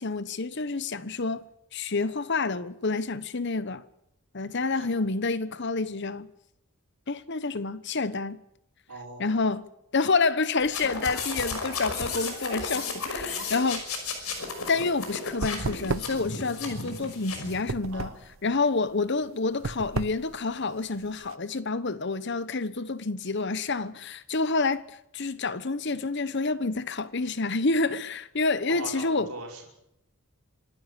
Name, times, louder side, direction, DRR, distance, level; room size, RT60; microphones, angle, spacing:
voice 1, 0.0-1.5 1.7-3.8 4.3-6.3 7.1-8.4 9.2-9.7 9.9-13.8 14.6-18.1 18.4-29.3, left 3 dB, 50° left, 1.0 m, -28 dB
voice 2, 8.9-9.3 17.9-18.2 28.7-29.7, right 2 dB, 90° right, 5.4 m, -40 dB
sound 1, 10.6-17.6, left 4 dB, 85° left, 5.7 m, -34 dB
sound 2, 13.8-21.4, right 3 dB, 65° right, 0.8 m, -36 dB
26.5 x 12.5 x 9.8 m
head